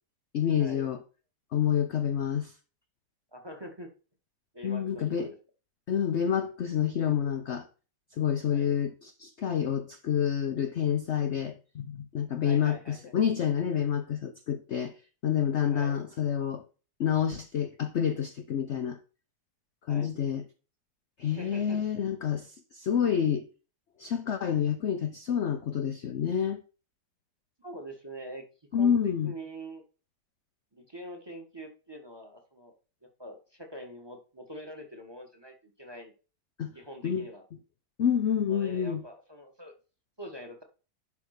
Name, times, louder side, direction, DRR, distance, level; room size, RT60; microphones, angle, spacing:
voice 1, 0.3-1.0 1.5-2.5 4.6-5.3 5.9-7.7 8.2-14.9 15.2-16.6 17.0-19.0 19.9-20.4 21.2-23.5 24.0-26.6 28.7-29.3 36.6-36.7 37.0-37.3 38.0-39.0, left 8 dB, 55° left, 0.8 m, -28 dB
voice 2, 3.3-3.9 4.5-5.3 8.5-8.7 12.4-13.1 15.7-16.0 19.9-20.1 21.3-21.8 27.6-28.4 28.7-29.8 30.7-32.7 33.0-36.1 36.7-37.4 38.5-39.7 40.2-40.6, equal, 15° right, 1.4 m, -44 dB
11.0 x 3.6 x 6.5 m
omnidirectional pair, 1.8 m